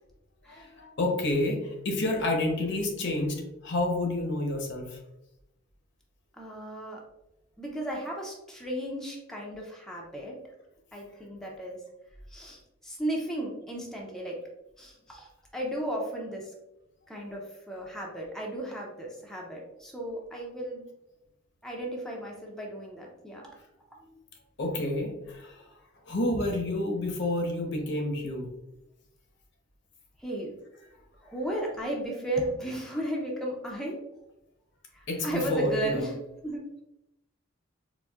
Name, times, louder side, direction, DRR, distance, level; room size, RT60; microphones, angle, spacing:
voice 1, 0.5-3.4 3.6-5.0 24.0-24.1 24.6-25.6 26.1-28.5 35.1-36.0, left 1 dB, 60° left, 2 dB, 0.7 m, -29 dB
voice 2, 6.4-7.0 7.6-10.4 10.9-11.8 12.3-14.4 14.8-16.5 17.1-20.9 21.6-23.5 30.2-30.5 31.2-34.0 34.9-36.2 36.4-36.7, right 1 dB, 5° left, -2 dB, 0.5 m, -35 dB
4.1 x 2.5 x 2.3 m, 0.90 s
head